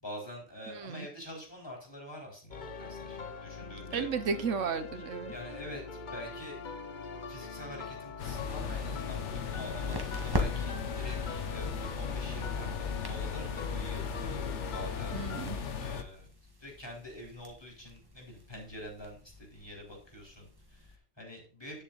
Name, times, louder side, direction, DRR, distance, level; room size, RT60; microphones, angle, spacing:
voice 1, 0.0-4.1 5.3-6.6 7.3-15.2 15.5-16.3 16.6-21.8, left 1 dB, 20° left, -1 dB, 3.9 m, -46 dB
voice 2, 0.7-1.1 3.9-5.3 15.1-15.6, right 5 dB, 85° right, 11 dB, 1.3 m, -33 dB
sound 1, 2.5-15.5, left 5 dB, 45° left, 0.9 m, -42 dB
sound 2, 8.2-16.0, left 6 dB, 75° left, 1.4 m, -37 dB
sound 3, 8.6-21.0, left 1 dB, 20° right, 1.7 m, -43 dB
10.0 x 7.4 x 4.0 m, 0.39 s
omnidirectional pair, 1.2 m